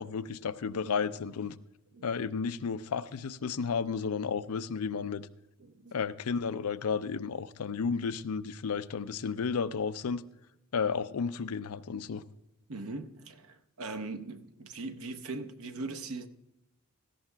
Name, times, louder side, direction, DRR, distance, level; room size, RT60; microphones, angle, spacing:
voice 1, 0.0-1.5 2.0-5.3 5.9-10.2 10.7-12.2, left 5 dB, 80° left, 0.5 m, -32 dB
voice 2, 5.6-6.0 12.7-16.3, right 3 dB, 70° right, 0.8 m, -40 dB
17.0 x 14.0 x 2.2 m
head